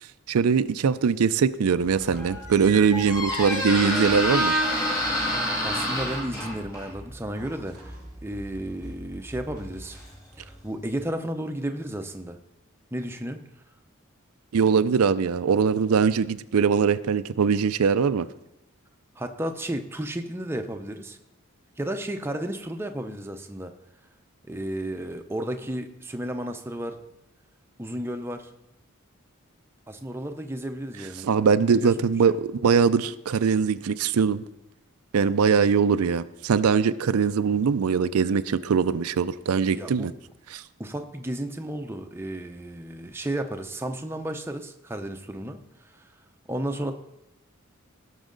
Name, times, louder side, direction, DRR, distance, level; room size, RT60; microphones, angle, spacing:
voice 1, 0.3-4.6 14.5-18.3 31.2-34.4 35.1-40.1 40.5-40.6, right 6 dB, 90° right, 13 dB, 0.4 m, -22 dB
Squeak, 1.8-10.6, equal, 15° left, 1.9 m, -29 dB
voice 2, 5.6-8.0 8.2-10.0 10.4-12.4 12.9-13.4 19.2-21.2 21.8-23.7 24.5-27.0 27.8-28.5 29.9-31.3 31.7-31.9 32.3-32.4 35.2-35.4 39.7-40.1 40.8-46.1 46.5-46.9, right 1 dB, 10° right, 5 dB, 0.6 m, -33 dB
17.0 x 6.3 x 3.8 m, 0.88 s
head